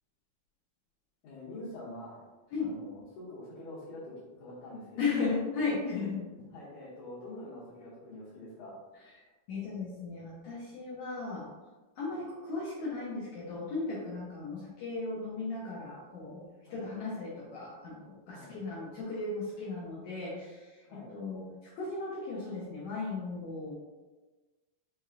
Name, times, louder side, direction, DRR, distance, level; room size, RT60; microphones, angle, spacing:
voice 1, 1.2-2.2 2.6-5.4 6.5-8.8 16.7-16.8 18.3-18.6 20.9-21.1, left 1 dB, 65° left, -12 dB, 2.3 m, -45 dB
voice 2, 5.0-6.2 9.2-11.5 12.0-16.4 16.7-20.8 21.1-23.7, left 4 dB, 90° left, -6 dB, 1.6 m, -36 dB
5.7 x 3.1 x 2.4 m, 1.2 s
omnidirectional pair, 4.3 m